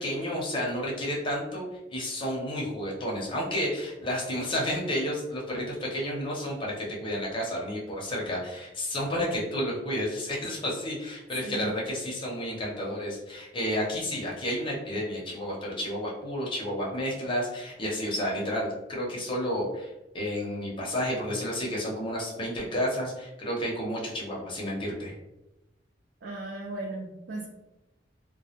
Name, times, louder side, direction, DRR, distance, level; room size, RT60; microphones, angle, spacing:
voice 1, 0.0-1.6 1.9-19.9 20.1-25.1, equal, 30° left, -3 dB, 0.6 m, -31 dB
voice 2, 11.4-11.7 26.2-27.5, right 2 dB, 60° right, -2 dB, 0.4 m, -36 dB
2.2 x 2.0 x 2.8 m, 0.98 s
head